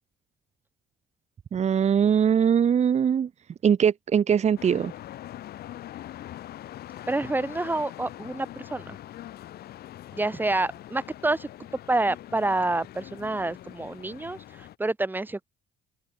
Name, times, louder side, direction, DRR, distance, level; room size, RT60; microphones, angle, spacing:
voice 1, 1.5-3.3 3.6-4.9, right 8 dB, 40° right, 2.2 m, -21 dB
sound 1, 4.6-14.7, left 13 dB, 65° left, 6.6 m, -43 dB
voice 2, 7.1-9.0 10.1-11.5 11.9-15.5, right 2 dB, 10° right, 2.0 m, -28 dB
open air
cardioid pair, 110°, 17 cm